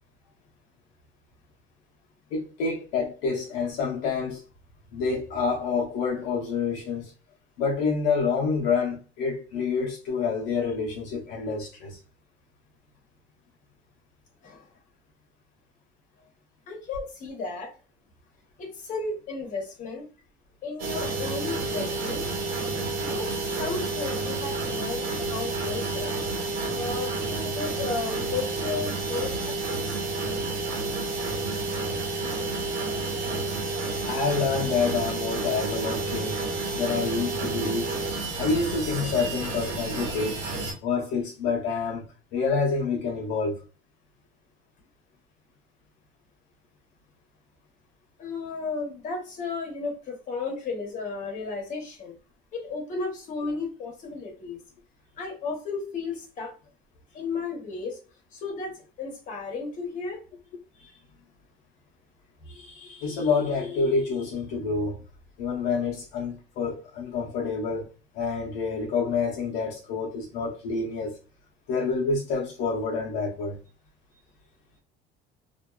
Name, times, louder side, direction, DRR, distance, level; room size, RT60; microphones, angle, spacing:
voice 1, 2.3-4.4 4.9-7.1 7.6-12.0 22.7-22.8 34.0-36.4 36.7-37.9 38.4-40.4 40.8-42.0 42.3-43.6 60.8-60.9 62.5-65.0 65.4-67.9 68.1-71.2 71.7-73.6, left 4 dB, 75° left, 0.7 m, -28 dB
voice 2, 16.7-17.7 18.6-20.1 20.6-22.3 23.0-26.1 26.7-30.1 48.2-52.2 52.5-54.6 55.2-56.5 57.1-58.0 58.3-60.2, left 4 dB, 45° left, 1.0 m, -34 dB
sound 1, 20.8-40.7, right 3 dB, 70° right, 1.2 m, -30 dB
2.5 x 2.2 x 2.3 m
cardioid pair, 135°, 18 cm